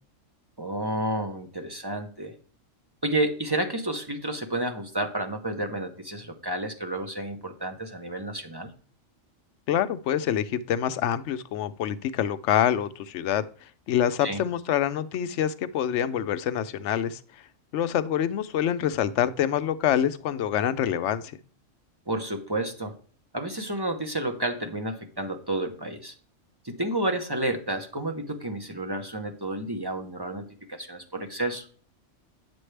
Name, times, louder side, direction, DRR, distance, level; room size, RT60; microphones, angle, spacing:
voice 1, 0.6-2.4 3.0-8.7 14.2-14.4 22.1-22.9 23.3-26.1 26.6-31.7, right 1 dB, 20° right, 0.7 m, -30 dB
voice 2, 9.7-13.5 13.9-17.2 17.7-21.3, left 10 dB, 70° left, 0.9 m, -26 dB
9.0 x 6.2 x 3.3 m
omnidirectional pair, 1.3 m